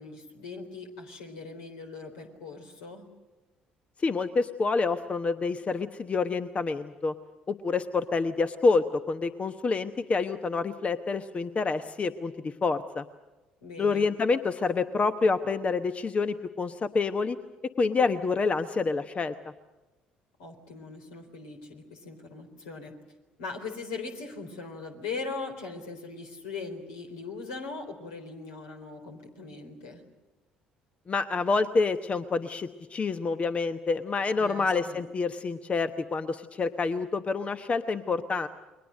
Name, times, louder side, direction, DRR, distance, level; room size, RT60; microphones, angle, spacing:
voice 1, 0.0-3.1 13.6-14.1 20.4-22.9 23.4-30.0 34.4-35.0, left 4 dB, 75° left, 3 dB, 3.8 m, -40 dB
voice 2, 4.0-7.1 7.5-13.0 13.8-17.4 17.8-19.3 31.1-38.5, left 4 dB, 30° left, 10 dB, 1.0 m, -27 dB
29.5 x 22.5 x 6.5 m, 1.2 s
figure-of-eight pair, 50°, 4 cm